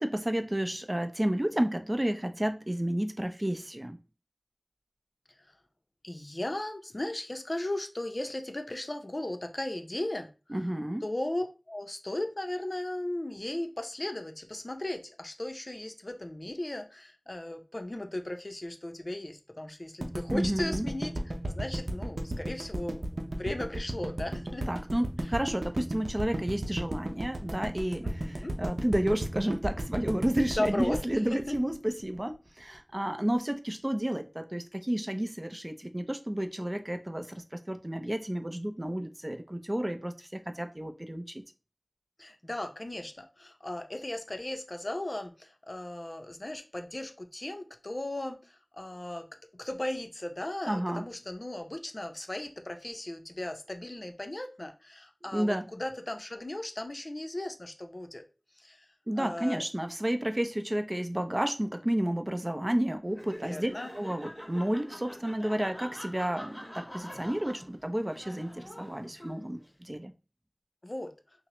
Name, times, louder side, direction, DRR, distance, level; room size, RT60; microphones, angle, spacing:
voice 1, 0.0-4.0 10.5-11.0 20.3-20.9 24.7-41.4 50.7-51.1 55.3-55.6 59.1-70.1, right 1 dB, 30° right, 0.4 m, -31 dB
voice 2, 6.0-10.6 11.0-21.1 21.5-24.8 25.2-25.3 28.0-28.5 30.6-31.0 31.3-31.6 42.2-49.3 49.6-58.2 58.6-58.9 59.2-59.6 63.4-63.9 70.8-71.1, left 1 dB, 50° left, 0.5 m, -36 dB
sound 1, 20.0-32.2, right 1 dB, 70° right, 0.6 m, -34 dB
Laughter, 63.1-69.7, equal, 15° left, 1.0 m, -45 dB
5.6 x 2.0 x 3.0 m
wide cardioid pair, 40°, 0 cm